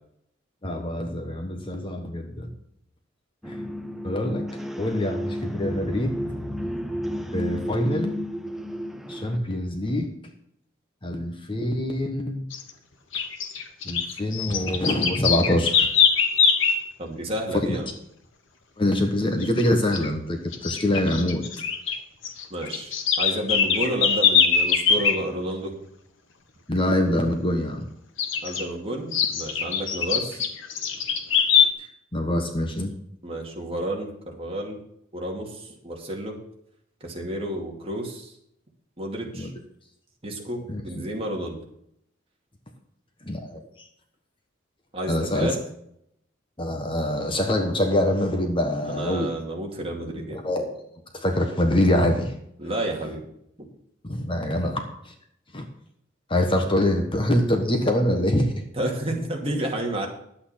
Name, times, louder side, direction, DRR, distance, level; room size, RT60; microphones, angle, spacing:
voice 1, 0.6-2.5 3.4-3.6 4.0-6.2 7.3-8.2 9.1-10.1 11.0-12.4 13.1-13.2 13.8-15.9 18.8-21.5 26.7-27.9 31.8-32.9 39.3-39.5 40.7-41.0 43.2-43.9 45.1-45.6 46.6-49.3 50.1-50.8 51.1-52.3 54.0-55.1 55.5-55.7 56.3-58.6, left 1 dB, 25° left, 5 dB, 1.2 m, -25 dB
sound 1, 3.4-9.4, equal, ahead, 0.7 m, -32 dB
sound 2, 12.5-12.7 13.1-16.8 19.4-19.7 19.9-20.1 20.5-22.0 22.2-25.2 28.2-28.6 29.1-31.7, left 6 dB, 75° left, 1.4 m, -22 dB
voice 2, 17.0-17.9 22.5-25.7 28.4-30.5 33.2-34.8 35.1-36.4 37.0-38.3 39.0-39.5 40.2-41.6 44.9-45.6 48.9-50.4 52.6-53.2 58.8-60.1, right 1 dB, 30° right, 0 dB, 2.4 m, -30 dB
11.0 x 8.7 x 5.8 m, 0.74 s
head